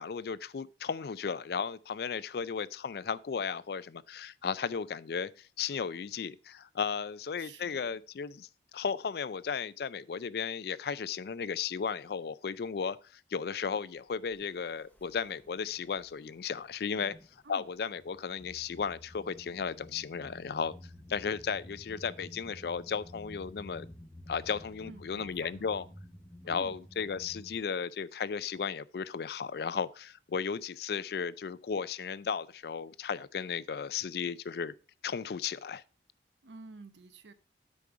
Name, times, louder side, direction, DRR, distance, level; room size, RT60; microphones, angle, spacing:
voice 1, 0.0-8.5 8.7-17.2 17.5-20.7 21.1-23.9 24.3-25.8 26.4-34.7 35.0-35.8, left 6 dB, 60° left, 0.4 m, -35 dB
voice 2, 7.4-8.0 17.4-17.7 24.8-25.9 26.4-26.8 36.4-37.3, right 3 dB, 80° right, 0.8 m, -50 dB
sound 1, 14.3-14.5 15.0-16.1 16.5-17.4 17.9-27.6, left 1 dB, 10° left, 0.6 m, -51 dB
8.5 x 5.3 x 4.6 m
head